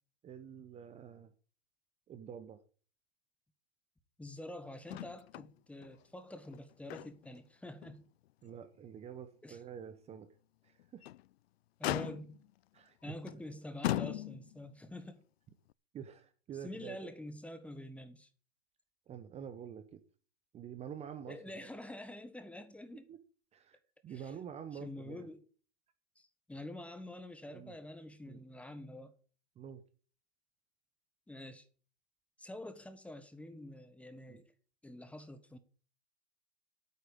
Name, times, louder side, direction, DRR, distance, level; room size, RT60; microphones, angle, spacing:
voice 1, 0.2-1.3 2.1-2.6 8.4-10.3 10.6-11.0 12.7-13.2 13.5-13.6 15.9-17.1 19.1-20.0 20.5-21.7 23.1-23.2 23.5-25.3 27.5-27.8 28.3-28.4 29.6-29.8 34.3-34.4, right 8 dB, 20° right, 1.0 m, -47 dB
voice 2, 4.2-8.0 9.4-9.6 11.8-12.4 13.0-15.2 16.6-18.3 21.3-23.1 24.1-24.3 24.7-25.4 26.2-29.1 31.3-31.7 32.4-34.5 34.8-35.6, left 1 dB, 5° left, 1.3 m, -47 dB
Motor vehicle (road), 4.9-5.5 5.8-5.9 6.4-7.4 7.8-7.9 8.5-8.6 10.8-11.3 11.8-12.5 13.3-13.4 13.8-14.6 15.7-15.8, left 15 dB, 70° left, 0.5 m, -38 dB
8.9 x 8.5 x 8.6 m
hypercardioid pair, 130°, 33 cm